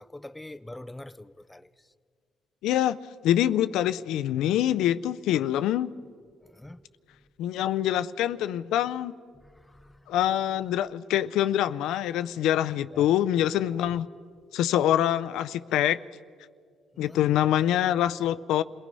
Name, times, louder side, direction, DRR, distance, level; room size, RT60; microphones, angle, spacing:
voice 1, 0.0-1.7 6.5-6.8 9.4-10.0 12.9-13.1 13.8-14.0 14.5-14.6 16.9-17.2, left 1 dB, 10° left, 0.6 m, -45 dB
voice 2, 2.6-3.0 3.2-5.9 7.4-9.1 10.1-14.1 14.5-16.0 17.0-18.6, left 11 dB, 90° left, 0.4 m, -25 dB
28.0 x 18.5 x 5.4 m
cardioid pair, 90°, 0 cm